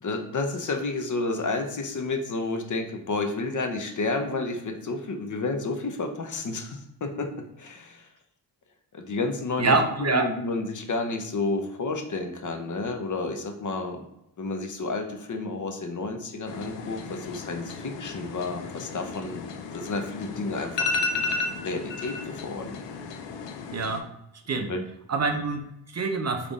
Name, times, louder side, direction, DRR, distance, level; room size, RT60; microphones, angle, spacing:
voice 1, 0.0-7.3 7.6-8.1 8.9-14.0 14.4-21.3 21.6-22.8 24.5-24.8, left 3 dB, 45° left, 5 dB, 0.8 m, -31 dB
voice 2, 9.6-10.2 23.7-24.1 24.5-24.7 25.1-26.5, right 3 dB, 35° right, 6 dB, 0.6 m, -25 dB
sound 1, 16.5-24.0, left 4 dB, 80° left, 0.6 m, -33 dB
3.4 x 2.5 x 4.0 m, 0.83 s
supercardioid pair, 55°, 43 cm